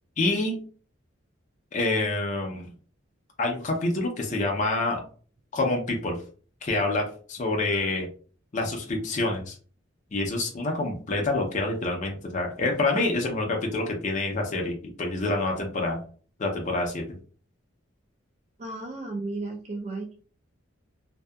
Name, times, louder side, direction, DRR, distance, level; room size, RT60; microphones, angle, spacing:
voice 1, 0.2-0.6 1.7-2.7 3.4-5.0 5.5-6.2 6.6-8.1 8.5-9.5 10.1-16.0 16.4-17.2, left 2 dB, 40° left, 1 dB, 0.5 m, -27 dB
voice 2, 18.6-20.1, right 2 dB, 35° right, 1 dB, 0.3 m, -34 dB
2.6 x 2.2 x 2.2 m, 0.41 s
head